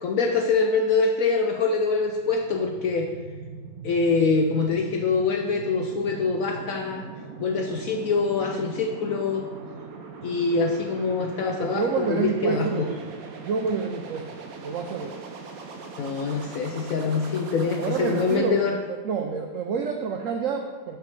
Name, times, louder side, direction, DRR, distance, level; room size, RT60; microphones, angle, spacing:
voice 1, 0.0-3.1 3.8-7.0 7.4-9.5 10.2-12.9 16.0-18.8, left 4 dB, 75° left, 3 dB, 0.8 m, -24 dB
sound 1, 1.8-18.4, right 4 dB, 65° right, 1.0 m, -41 dB
voice 2, 11.6-13.1 13.4-14.3 14.6-15.2 17.8-18.6 18.9-21.0, right 6 dB, 80° right, 3 dB, 0.7 m, -28 dB
5.8 x 4.9 x 6.3 m, 1.4 s
omnidirectional pair, 1.9 m